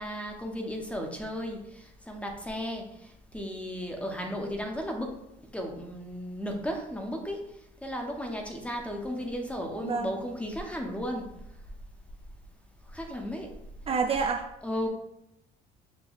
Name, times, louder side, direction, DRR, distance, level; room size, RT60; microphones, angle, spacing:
voice 1, 0.0-5.2 5.5-7.4 7.8-11.3 12.9-13.5 14.6-14.9, equal, 5° left, 2 dB, 0.8 m, -35 dB
voice 2, 13.9-14.4, right 5 dB, 35° right, 3 dB, 0.4 m, -27 dB
6.0 x 2.2 x 3.9 m, 0.82 s
cardioid pair, 110°, 17 cm